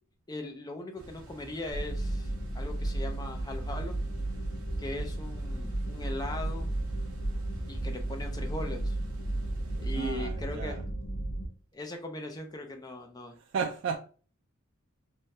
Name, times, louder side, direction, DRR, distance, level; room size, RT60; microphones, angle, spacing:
voice 1, 0.3-4.0 4.8-6.7 7.7-8.9 9.8-10.8 11.7-13.4, left 2 dB, 20° left, 0.5 m, -39 dB
sound 1, 1.0-10.1, equal, 80° right, 0.8 m, -48 dB
sound 2, 1.7-11.5, right 1 dB, 80° left, 1.0 m, -34 dB
voice 2, 9.9-10.8 13.3-14.0, right 6 dB, 55° right, 0.3 m, -34 dB
3.2 x 2.2 x 2.6 m
head